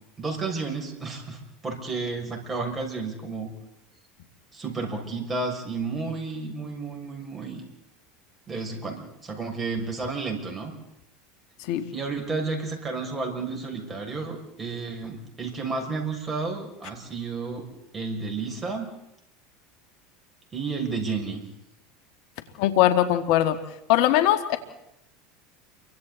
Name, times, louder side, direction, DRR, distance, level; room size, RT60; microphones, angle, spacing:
voice 1, 0.2-3.5 4.5-7.6 8.5-10.7 11.9-17.6 17.9-18.9 20.5-21.4, right 4 dB, 20° right, 2 dB, 6.5 m, -31 dB
voice 2, 22.6-23.6 23.9-24.6, left 12 dB, 65° left, 8 dB, 2.1 m, -20 dB
29.0 x 24.5 x 4.2 m, 0.82 s
supercardioid pair, 100°, 0 cm